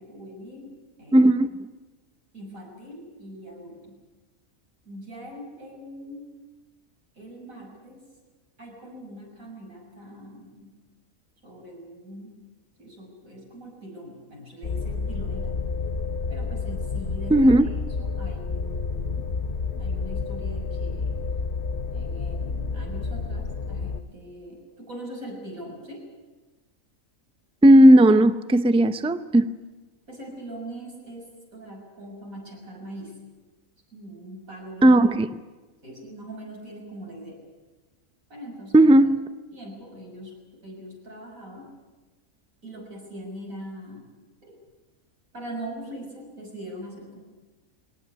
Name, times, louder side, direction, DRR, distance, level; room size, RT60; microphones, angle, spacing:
voice 1, 0.0-1.2 2.3-4.0 4.9-6.4 7.1-8.1 8.6-10.8 11.4-12.4 12.8-15.6 16.3-19.3 19.7-21.2 21.9-26.1 30.1-33.3 33.9-35.0 35.8-37.4 38.3-39.0 39.5-41.8 42.6-44.1 44.4-44.6 45.3-47.2, right 1 dB, 80° right, -1 dB, 7.1 m, -41 dB
voice 2, 1.1-1.5 17.3-17.7 27.6-29.5 34.8-35.3 38.7-39.2, right 1 dB, 5° right, 12 dB, 0.5 m, -15 dB
sound 1, 14.6-24.0, left 4 dB, 45° left, 1.1 m, -30 dB
21.5 x 19.0 x 9.7 m, 1.2 s
omnidirectional pair, 1.4 m